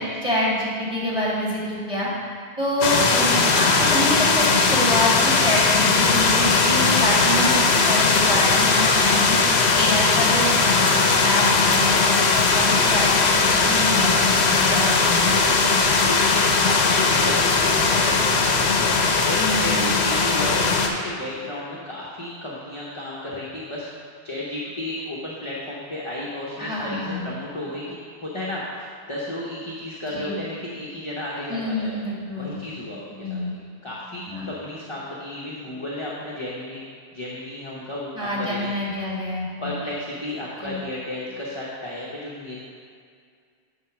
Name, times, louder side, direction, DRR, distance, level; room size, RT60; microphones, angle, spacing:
voice 1, 0.2-2.1 2.6-9.4 9.8-15.3 19.4-20.0 26.6-27.3 30.1-30.4 31.5-32.6 33.2-33.5 34.3-34.5 38.1-39.7 40.6-40.8, left 1 dB, 5° right, -7 dB, 2.1 m, -26 dB
sound 1, 2.8-20.9, left 4 dB, 75° left, 1.0 m, -19 dB
voice 2, 16.1-18.2 18.5-27.8 28.2-31.9 32.4-33.4 33.8-36.8 37.1-38.7 39.6-42.6, left 1 dB, 30° left, -5 dB, 0.9 m, -33 dB
9.0 x 4.0 x 6.0 m, 2.2 s
omnidirectional pair, 1.1 m